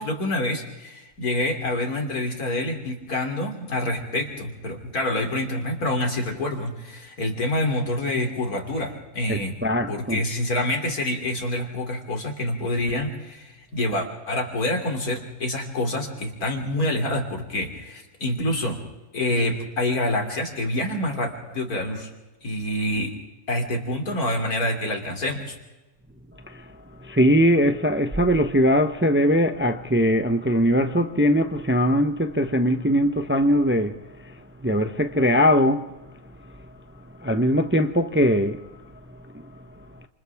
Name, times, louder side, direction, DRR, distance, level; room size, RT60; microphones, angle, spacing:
voice 1, 0.0-9.6 9.9-18.8 19.1-22.1 22.4-23.1 23.5-25.6, left 1 dB, 80° left, 3.5 m, -27 dB
voice 2, 9.3-10.2 26.5-26.7 27.0-34.0 34.2-35.9 37.2-38.7 39.4-39.6, equal, 10° right, 0.6 m, -21 dB
29.5 x 27.5 x 3.5 m
omnidirectional pair, 1.6 m